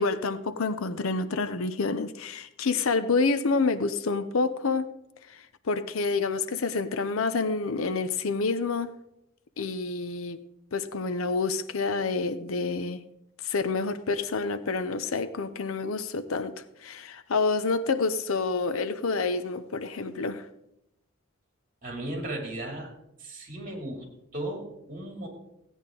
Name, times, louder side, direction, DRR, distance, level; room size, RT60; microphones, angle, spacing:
voice 1, 0.0-4.9 5.3-5.4 5.7-8.9 9.6-10.4 10.7-13.0 13.4-16.5 16.8-20.4, left 4 dB, 75° left, 0.6 m, -28 dB
voice 2, 21.8-22.9 23.2-24.1 24.3-25.3, right 1 dB, 40° right, 2.7 m, -35 dB
15.5 x 9.2 x 3.8 m
head